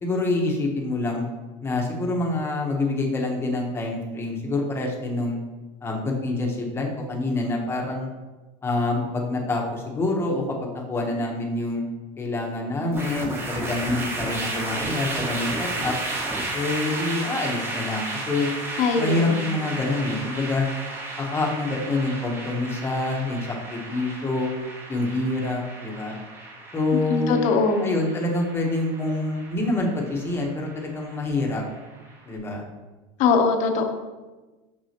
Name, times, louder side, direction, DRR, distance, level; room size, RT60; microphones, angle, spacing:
voice 1, 0.0-1.3 1.6-5.4 5.8-8.1 8.6-11.8 12.2-15.9 16.5-18.5 19.0-20.7 21.2-24.5 24.9-26.2 26.7-27.3 27.8-31.6 32.2-32.6, left 2 dB, 15° left, 0 dB, 0.9 m, -26 dB
sound 1, 12.9-32.2, right 2 dB, 15° right, 0.8 m, -33 dB
voice 2, 18.8-19.5 27.1-27.8 33.2-33.8, left 4 dB, 45° left, 5 dB, 0.8 m, -21 dB
6.1 x 6.1 x 2.9 m, 1.2 s
cardioid pair, 155°, 17 cm